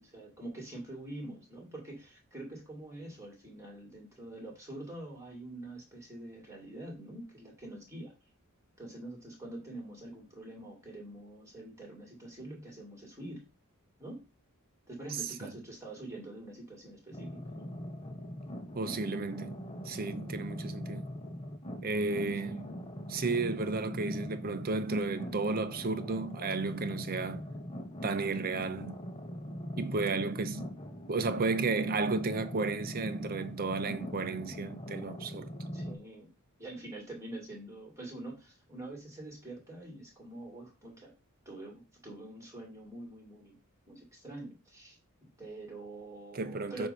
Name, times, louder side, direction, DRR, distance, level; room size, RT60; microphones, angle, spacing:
voice 1, 0.0-8.1 8.8-13.5 14.0-14.3 14.9-17.7 22.4-22.6 35.7-36.3 36.6-41.1 41.4-43.6 43.9-46.9, right 1 dB, 15° right, 2.5 m, -45 dB
sound 1, 17.1-35.9, equal, 25° left, 0.9 m, -42 dB
voice 2, 18.7-21.1 21.8-22.7 23.1-27.4 28.0-29.0 29.8-30.7 31.1-35.5 46.3-46.9, right 3 dB, 40° right, 0.6 m, -33 dB
7.7 x 2.7 x 5.5 m
head